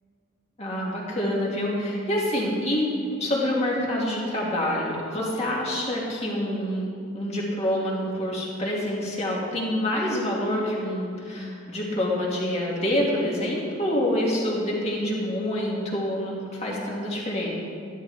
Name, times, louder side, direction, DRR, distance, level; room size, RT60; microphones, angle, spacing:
voice 1, 0.6-2.9 3.2-6.9 7.1-17.5, left 1 dB, 35° left, -4 dB, 2.4 m, -27 dB
12.5 x 12.0 x 3.6 m, 2.3 s
head